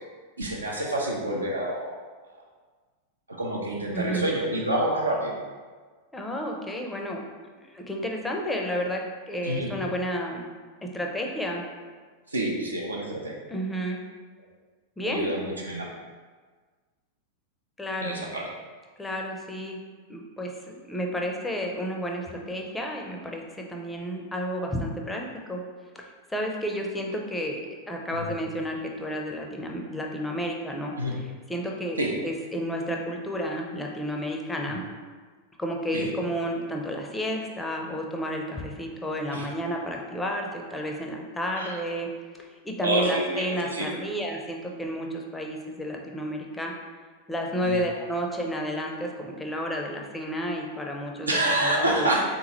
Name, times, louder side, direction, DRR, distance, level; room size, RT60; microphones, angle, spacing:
voice 1, 0.4-1.9 3.3-5.3 9.4-9.7 12.3-13.3 15.0-15.9 18.0-18.5 28.1-28.3 31.0-31.1 32.0-32.1 35.9-36.1 39.3-39.5 41.5-41.8 42.8-43.9 47.6-47.8 51.3-52.2, right 1 dB, 80° right, -2 dB, 0.5 m, -27 dB
voice 2, 3.9-4.3 6.1-7.2 7.6-10.5 10.8-11.7 13.5-14.0 15.0-15.3 17.8-18.2 19.0-19.8 20.1-23.4 23.7-25.6 25.9-27.6 27.9-34.8 35.6-42.1 42.4-46.7 47.3-52.1, equal, 10° left, 1 dB, 0.5 m, -31 dB
3.6 x 2.9 x 2.9 m, 1.5 s
figure-of-eight pair, 90°, 0 cm